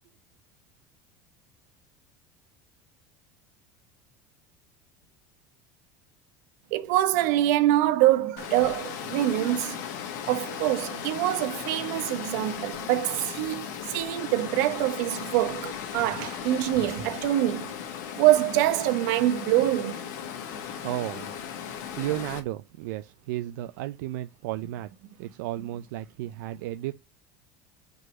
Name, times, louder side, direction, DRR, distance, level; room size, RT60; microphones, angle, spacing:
voice 1, 6.7-9.8 10.3-17.7 18.2-20.0, right 14 dB, 70° right, 1.0 m, -25 dB
Water, 8.4-22.4, left 8 dB, 80° left, 1.7 m, -37 dB
voice 2, 20.5-21.3 22.0-24.9 25.2-26.9, right 15 dB, 90° right, 0.5 m, -33 dB
5.3 x 4.0 x 6.0 m
cardioid pair, 175°, 10 cm